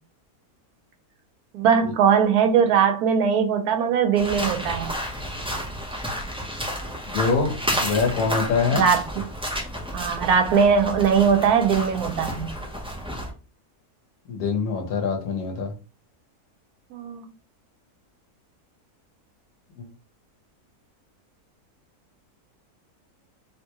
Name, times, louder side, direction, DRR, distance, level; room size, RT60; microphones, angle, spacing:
voice 1, 1.5-5.0 8.7-9.0 9.9-12.5 16.9-17.2, right 7 dB, 80° right, 1.1 m, -20 dB
sound 1, 4.1-13.3, equal, 5° right, 0.4 m, -31 dB
voice 2, 7.1-8.8 14.3-15.7, left 4 dB, 80° left, 1.4 m, -24 dB
3.5 x 2.2 x 2.9 m
omnidirectional pair, 1.6 m